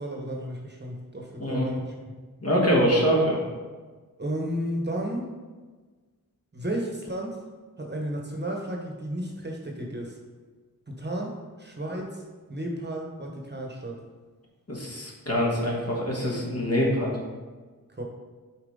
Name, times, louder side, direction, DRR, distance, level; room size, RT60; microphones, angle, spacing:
voice 1, 0.0-1.8 4.2-5.2 6.5-7.4 7.8-10.2 10.9-12.2 12.5-14.0 17.9-18.0, right 1 dB, 30° right, 0 dB, 1.0 m, -33 dB
voice 2, 1.4-1.7 2.4-3.4 14.7-17.1, equal, 45° left, -3 dB, 1.6 m, -24 dB
7.4 x 4.5 x 3.7 m, 1.4 s
wide cardioid pair, 80°, 35 cm